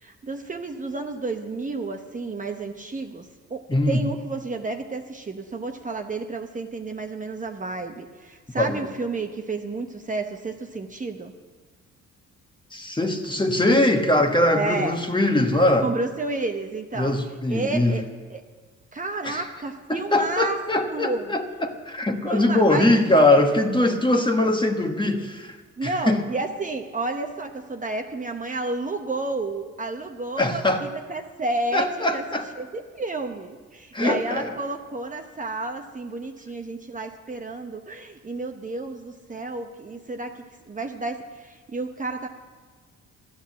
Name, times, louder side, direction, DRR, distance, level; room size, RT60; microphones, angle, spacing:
voice 1, 0.0-11.3 14.5-15.0 15.8-17.1 17.5-18.4 18.9-20.6 20.9-21.3 22.2-23.5 25.8-42.3, right 3 dB, 25° right, 4 dB, 1.0 m, -31 dB
voice 2, 3.7-4.0 8.6-8.9 12.7-15.9 17.0-18.0 19.2-19.4 19.9-25.6 25.8-26.2 30.4-30.9 31.7-32.4 33.9-34.5, left 1 dB, 15° left, 5 dB, 1.3 m, -21 dB
13.0 x 10.0 x 7.4 m, 1.5 s
cardioid pair, 90°, 30 cm